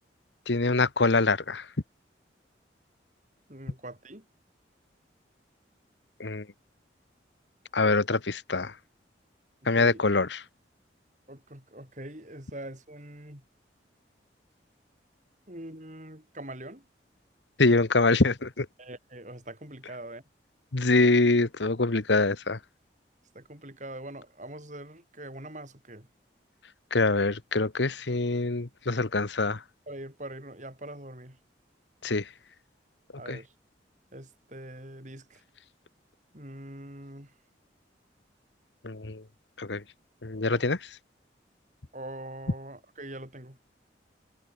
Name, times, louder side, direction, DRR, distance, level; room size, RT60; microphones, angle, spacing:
voice 1, 0.5-1.6 6.2-6.4 7.7-8.7 9.7-10.4 17.6-18.7 20.7-22.6 26.9-29.6 32.0-32.3 33.3-33.4 38.8-39.2 39.6-39.8 40.2-40.8, left 3 dB, 80° left, 1.3 m, -24 dB
voice 2, 3.5-4.2 9.8-10.0 11.3-13.4 15.5-16.8 18.8-20.2 23.4-26.1 29.9-31.4 33.2-33.5 34.1-35.4 36.3-37.3 40.5-40.7 41.9-43.6, right 1 dB, 40° right, 7.4 m, -43 dB
head